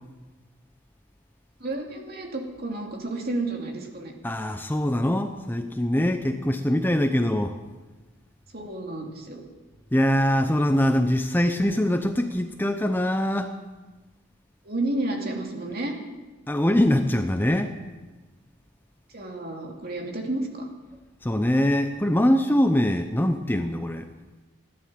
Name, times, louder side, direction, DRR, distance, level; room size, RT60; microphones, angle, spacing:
voice 1, 1.6-4.1 8.5-9.4 14.6-16.0 19.1-20.7, right 2 dB, 50° right, 1 dB, 2.8 m, -31 dB
voice 2, 4.2-7.5 9.9-13.5 16.5-17.7 21.2-24.1, left 1 dB, 10° left, 7 dB, 0.6 m, -23 dB
15.5 x 11.5 x 7.5 m, 1.2 s
head